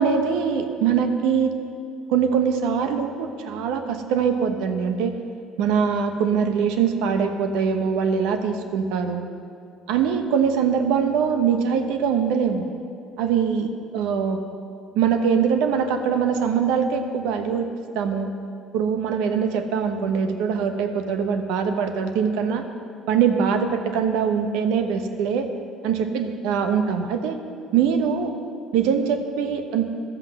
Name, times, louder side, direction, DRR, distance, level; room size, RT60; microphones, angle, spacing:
voice 1, 0.0-1.5 2.1-5.2 5.6-9.3 9.9-12.6 13.2-14.4 14.9-18.3 18.7-22.6 23.1-25.5 25.8-27.4 27.7-28.3 28.7-30.0, right 7 dB, 80° right, 7 dB, 1.0 m, -22 dB
11.5 x 7.7 x 7.3 m, 2.4 s
supercardioid pair, 80°, 0 cm